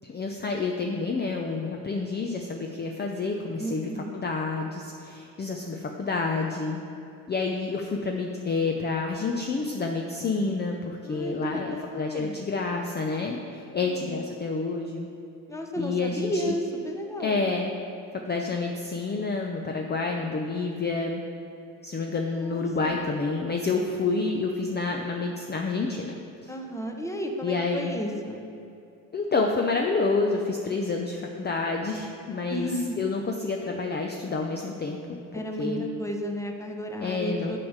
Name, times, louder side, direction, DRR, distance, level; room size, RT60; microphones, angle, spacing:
voice 1, 0.1-6.8 7.3-15.1 15.8-16.5 17.2-17.7 18.1-21.2 21.8-26.1 26.4-26.5 27.4-27.9 29.1-32.7 33.0-35.8 37.0-37.6, left 3 dB, 25° left, 2 dB, 0.7 m, -29 dB
voice 2, 3.6-4.1 11.0-12.4 13.8-14.2 15.5-17.4 22.3-23.0 26.5-28.5 32.5-33.0 35.3-37.6, equal, 5° left, 3 dB, 1.0 m, -33 dB
7.0 x 4.8 x 6.6 m, 2.6 s
supercardioid pair, 75°, 42 cm